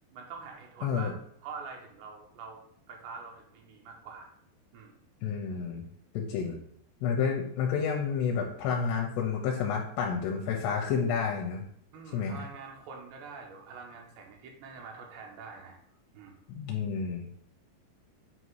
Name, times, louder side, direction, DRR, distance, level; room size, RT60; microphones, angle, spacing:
voice 1, 0.1-2.6 2.9-4.3 4.7-5.0 11.9-15.8 16.1-16.4, right 5 dB, 80° right, 1 dB, 3.0 m, -45 dB
voice 2, 0.8-1.1 5.2-5.8 6.1-6.6 7.0-11.6 12.1-12.4 16.5-17.3, left 6 dB, 85° left, 0 dB, 2.6 m, -30 dB
7.7 x 2.7 x 4.6 m, 0.69 s
omnidirectional pair, 5.0 m